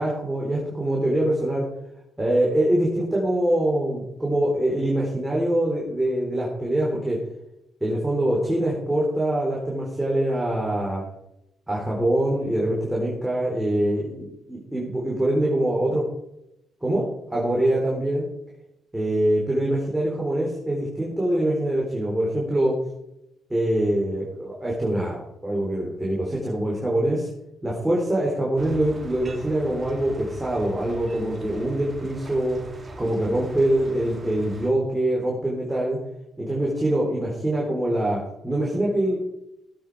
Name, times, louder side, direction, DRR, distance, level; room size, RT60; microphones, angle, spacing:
voice 1, 0.0-1.7 2.2-7.2 7.8-11.0 11.7-16.0 16.8-17.0 17.3-18.2 18.9-22.8 23.5-27.3 27.6-32.6 33.0-36.0 36.4-39.2, right 1 dB, 10° right, -4 dB, 3.8 m, -24 dB
sound 1, 28.6-34.7, right 1 dB, 25° right, 2.6 m, -41 dB
16.0 x 8.3 x 4.7 m, 0.85 s
cardioid pair, 90°, 0 cm